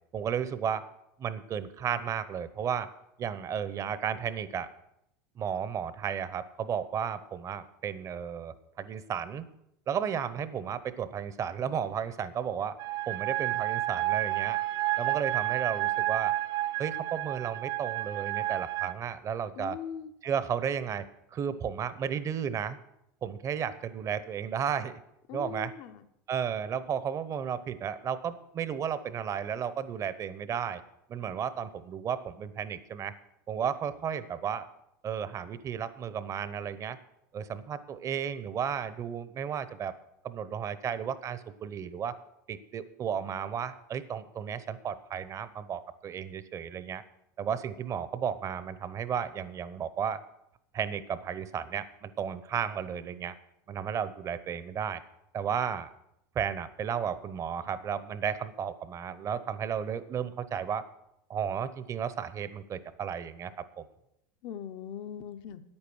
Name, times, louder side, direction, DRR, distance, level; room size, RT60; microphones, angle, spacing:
voice 1, 0.1-0.8 1.2-2.9 3.2-4.7 5.4-9.5 9.9-12.8 13.1-14.6 15.0-16.3 16.8-19.8 20.2-22.8 23.2-25.0 25.3-25.7 26.3-30.8 31.1-33.1 33.5-34.7 35.0-37.0 37.3-39.9 40.2-42.2 42.5-47.0 47.4-50.2 50.7-53.3 53.7-55.0 55.3-55.9 56.3-60.8 61.3-63.8, right 8 dB, 30° right, 14 dB, 0.8 m, -33 dB
sound 1, 12.8-18.9, right 16 dB, 55° right, 0.5 m, -30 dB
voice 2, 19.6-20.1 25.3-26.1 64.4-65.6, left 9 dB, 55° left, 9 dB, 0.9 m, -40 dB
9.7 x 8.8 x 6.2 m, 0.80 s
supercardioid pair, 110°, 10 cm